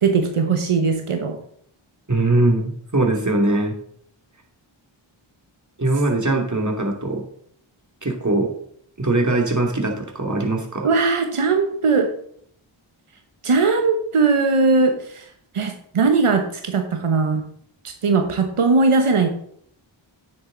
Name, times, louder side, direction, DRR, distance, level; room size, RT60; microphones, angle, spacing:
voice 1, 0.0-1.4 10.8-12.1 13.4-15.3 15.5-17.4 17.8-19.3, right 4 dB, 80° right, 5 dB, 1.2 m, -19 dB
voice 2, 2.1-3.7 5.8-7.2 8.0-8.5 9.0-10.9, right 2 dB, 35° right, 1 dB, 2.5 m, -21 dB
10.0 x 7.9 x 3.9 m, 0.64 s
wide cardioid pair, 50°, 50 cm